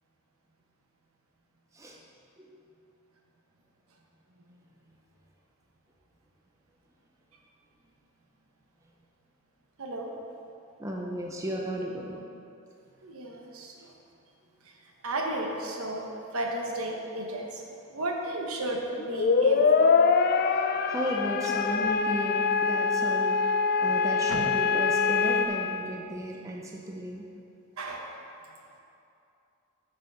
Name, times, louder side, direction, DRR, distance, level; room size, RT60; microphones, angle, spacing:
voice 1, 9.8-10.1 13.0-13.9 15.0-16.1 16.3-17.6 17.9-19.9 21.5-21.6 24.3-24.4 27.8-28.0, right 1 dB, 70° right, 1 dB, 1.1 m, -33 dB
voice 2, 10.8-12.2 20.9-23.4 23.8-27.2, equal, 15° right, -2 dB, 0.7 m, -34 dB
sound 1, 19.0-25.5, left 5 dB, 45° left, 0.4 m, -24 dB
6.9 x 6.5 x 5.6 m, 2.6 s
head